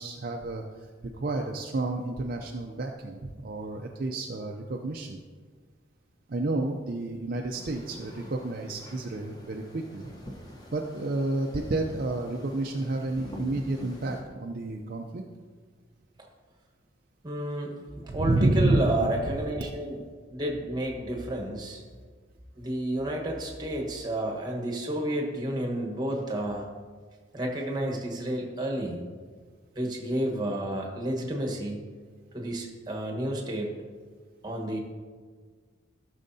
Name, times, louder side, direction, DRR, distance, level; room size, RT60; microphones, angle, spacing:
voice 1, 0.0-5.2 6.3-10.1 10.7-15.2 18.1-19.1, right 2 dB, 50° right, 1 dB, 0.5 m, -30 dB
sound 1, 7.5-14.2, equal, 20° left, 0.9 m, -45 dB
voice 2, 17.2-20.0 20.3-21.8 22.6-26.6 27.3-29.0 29.7-31.9 32.3-33.7 34.4-34.8, right 1 dB, 20° right, 1 dB, 1.2 m, -31 dB
14.0 x 6.4 x 2.7 m, 1.5 s
head